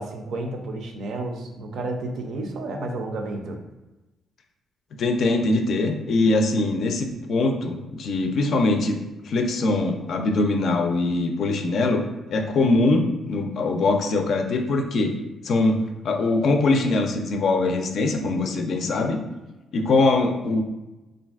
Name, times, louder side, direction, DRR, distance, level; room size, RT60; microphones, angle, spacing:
voice 1, 0.0-3.6, right 2 dB, 70° right, 3 dB, 0.4 m, -31 dB
voice 2, 5.0-9.0 9.2-12.0 12.3-15.1 15.4-19.2 19.7-20.6, left 2 dB, 65° left, 4 dB, 0.4 m, -22 dB
3.3 x 2.5 x 2.4 m, 1.1 s
cardioid pair, 90°, 0 cm